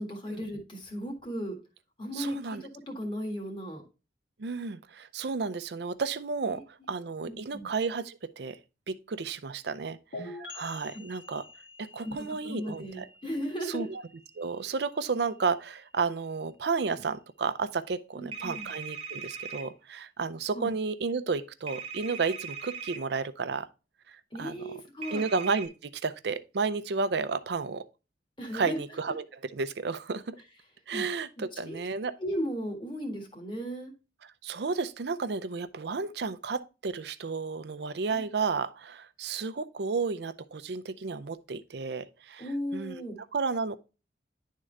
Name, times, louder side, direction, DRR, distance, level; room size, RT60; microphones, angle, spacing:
voice 1, 0.0-1.6 2.0-3.8 6.5-6.6 7.3-7.7 12.0-12.1 12.4-13.9 18.1-18.7 20.5-20.7 24.3-25.2 28.4-28.8 30.9-31.0 31.5-31.8 32.2-33.9 38.1-38.2 42.4-43.2, equal, 25° left, 1.6 m, -36 dB
voice 2, 2.1-2.6 4.4-8.6 8.9-11.5 11.8-13.1 13.7-14.0 14.4-23.7 24.1-24.6 25.1-27.9 28.5-29.2 29.5-30.4 30.9-32.1 34.4-43.0 43.3-43.8, right 4 dB, 65° right, 0.5 m, -32 dB
sound 1, 10.1-17.7, left 2 dB, 75° left, 1.7 m, -49 dB
sound 2, 18.3-19.7 21.7-23.0 25.0-25.7, right 6 dB, 30° right, 0.9 m, -39 dB
10.5 x 3.7 x 3.2 m
head